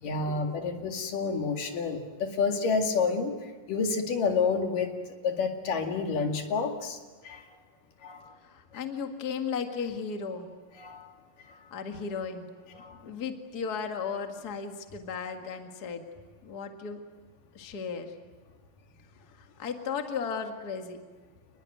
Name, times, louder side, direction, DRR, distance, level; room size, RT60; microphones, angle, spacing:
voice 1, 0.0-3.4 3.7-5.0 5.2-7.0 7.2-7.4 8.0-8.3 10.8-11.1 12.8-13.0, left 4 dB, 70° left, 3 dB, 3.8 m, -29 dB
voice 2, 8.5-10.5 11.7-12.5 13.1-16.0 16.4-17.0 17.5-18.1 19.6-21.0, left 6 dB, 35° left, 4 dB, 2.0 m, -35 dB
29.5 x 20.5 x 9.2 m, 1.3 s
omnidirectional pair, 3.9 m